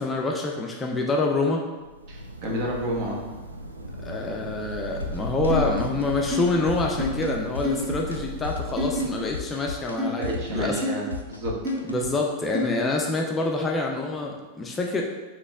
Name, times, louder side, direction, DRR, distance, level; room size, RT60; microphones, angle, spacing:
voice 1, 0.0-1.7 4.0-10.8 11.9-15.0, left 2 dB, 20° left, 0 dB, 0.5 m, -26 dB
Thunder / Rain, 1.7-9.8, equal, 80° right, 0.4 m, -36 dB
voice 2, 2.1-3.2 10.1-11.5, equal, 45° right, -3 dB, 1.1 m, -30 dB
sound 1, 5.0-5.5 5.8-6.4 6.7-7.3 7.6-8.2 8.4-12.1, left 5 dB, 85° left, 0.4 m, -34 dB
sound 2, 5.5-5.7 6.3-6.4 7.0-7.1 7.6-7.9 8.8-9.0 10.0-10.1 10.8-11.0 11.6-11.8 12.5-12.7, left 1 dB, 20° right, 1.3 m, -27 dB
4.0 x 3.0 x 3.4 m, 1.3 s
figure-of-eight pair, 90°, 0 cm